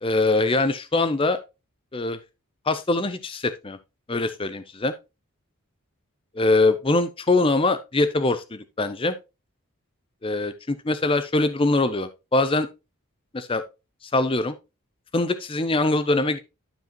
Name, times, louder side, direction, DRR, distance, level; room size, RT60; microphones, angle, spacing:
voice 1, 0.0-1.4 1.9-2.2 2.7-3.8 4.1-4.9 6.3-9.1 10.2-12.7 13.3-13.6 14.1-14.5 15.1-16.4, left 2 dB, 25° left, 0.6 m, -23 dB
12.0 x 4.9 x 2.9 m
head